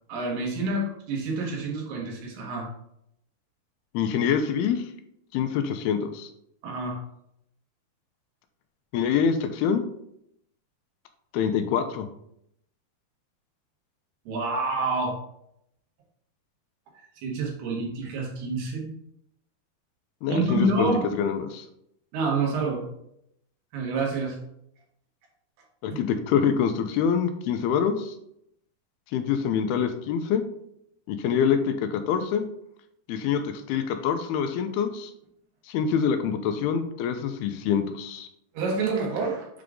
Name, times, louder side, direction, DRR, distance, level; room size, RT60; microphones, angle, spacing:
voice 1, 0.1-2.7 6.6-7.0 14.3-15.2 17.0-18.9 20.3-21.0 22.1-22.9 23.7-24.4 25.9-26.0 38.5-39.5, right 3 dB, 85° right, -2 dB, 3.6 m, -28 dB
voice 2, 3.9-4.8 5.3-6.3 8.9-9.8 11.3-12.1 20.2-20.9 21.2-21.6 25.8-28.1 29.1-30.4 31.1-32.4 33.1-35.1 35.7-38.3, left 7 dB, 80° left, 7 dB, 2.5 m, -25 dB
7.8 x 3.6 x 3.7 m, 0.74 s
omnidirectional pair, 4.6 m